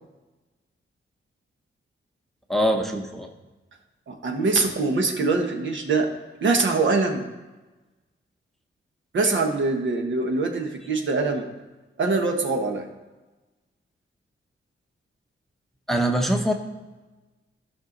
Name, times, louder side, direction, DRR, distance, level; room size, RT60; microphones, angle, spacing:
voice 1, 2.5-3.3 15.9-16.5, equal, ahead, 3 dB, 0.8 m, -23 dB
voice 2, 4.1-6.1 6.4-7.2 9.1-11.5 12.0-12.9, right 3 dB, 65° right, 3 dB, 1.3 m, -23 dB
14.5 x 5.7 x 3.9 m, 1.2 s
wide cardioid pair, 140°, 21 cm